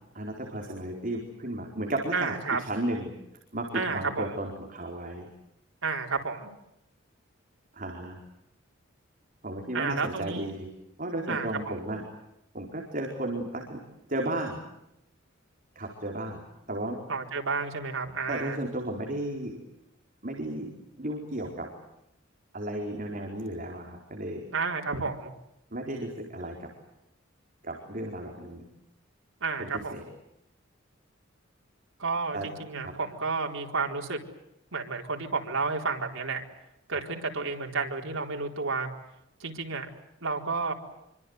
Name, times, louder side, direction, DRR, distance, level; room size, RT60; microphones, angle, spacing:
voice 1, 0.1-3.1 3.5-5.3 7.7-8.2 9.4-10.7 11.0-12.0 12.5-13.8 14.1-14.6 15.7-16.4 16.7-17.0 18.3-19.6 20.2-20.7 21.0-21.7 22.5-24.4 25.7-26.7 27.6-28.6 29.6-30.0 32.3-32.5 32.8-32.9, right 1 dB, 45° right, 1 dB, 4.5 m, -34 dB
voice 2, 2.1-2.6 3.7-4.3 5.8-6.5 9.7-10.5 11.3-11.7 17.1-18.6 24.5-25.3 29.4-30.0 32.0-34.2 34.7-36.4 36.9-38.9 39.4-39.9 40.2-40.7, right 4 dB, 90° right, 2 dB, 4.3 m, -31 dB
26.5 x 25.0 x 8.1 m, 0.85 s
head